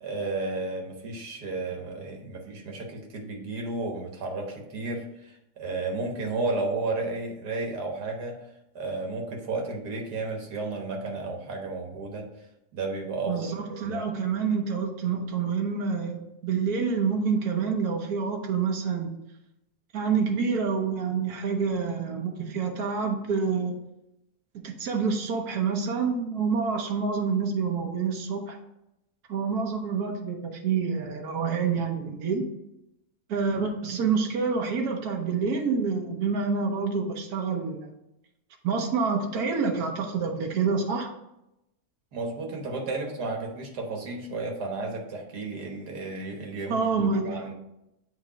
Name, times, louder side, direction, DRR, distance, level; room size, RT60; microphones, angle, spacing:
voice 1, 0.0-8.5 8.8-12.3 12.7-13.5 13.8-14.0 42.1-47.5, right 3 dB, 90° right, 1 dB, 1.8 m, -33 dB
voice 2, 13.3-19.1 19.9-23.7 24.5-28.6 29.3-32.5 33.3-37.9 38.6-41.1 46.7-47.5, right 5 dB, 70° right, 2 dB, 1.4 m, -27 dB
8.2 x 3.1 x 5.0 m, 0.87 s
omnidirectional pair, 1.7 m